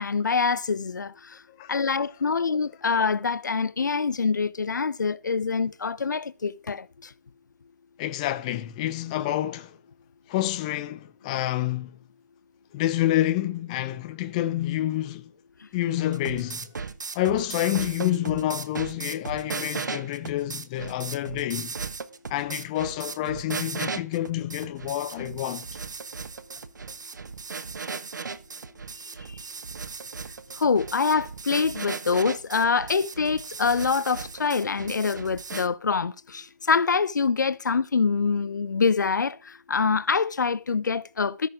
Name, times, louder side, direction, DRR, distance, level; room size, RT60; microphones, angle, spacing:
voice 1, 0.0-1.4 1.7-7.1 30.6-41.5, left 5 dB, 85° left, 1.0 m, -25 dB
voice 2, 8.0-9.7 10.3-11.9 12.7-15.3 15.7-16.7 17.1-21.7 22.3-25.6, left 13 dB, 20° left, 0.9 m, -28 dB
sound 1, 16.0-35.7, right 5 dB, 80° right, 1.4 m, -36 dB
14.0 x 9.3 x 5.0 m
hypercardioid pair, 165°, 10 cm